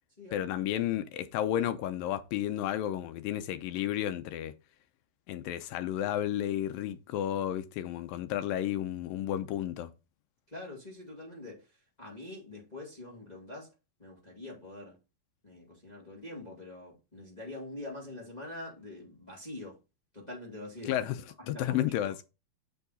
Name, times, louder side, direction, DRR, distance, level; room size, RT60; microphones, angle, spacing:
voice 1, 0.3-4.5 5.3-9.9 20.9-21.2 21.5-22.2, left 11 dB, 80° left, 2.3 m, -32 dB
voice 2, 10.5-11.7 12.0-13.7 14.0-15.0 15.4-19.8 20.1-21.0 21.5-22.1, left 2 dB, 15° left, 1.9 m, -44 dB
7.1 x 5.6 x 4.0 m
omnidirectional pair, 4.2 m